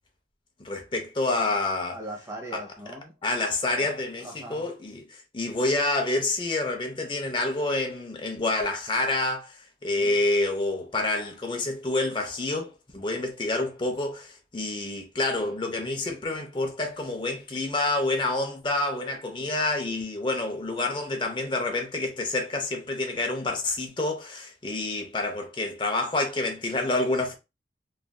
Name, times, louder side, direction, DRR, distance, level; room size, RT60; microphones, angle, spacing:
voice 1, 0.6-2.0 2.5-2.6 3.2-9.6 9.8-27.3, left 2 dB, 25° left, 0.6 m, -28 dB
voice 2, 1.9-3.1 3.7-3.9 4.2-4.7 10.0-10.2, right 1 dB, 15° right, 0.8 m, -40 dB
3.1 x 2.6 x 2.2 m
head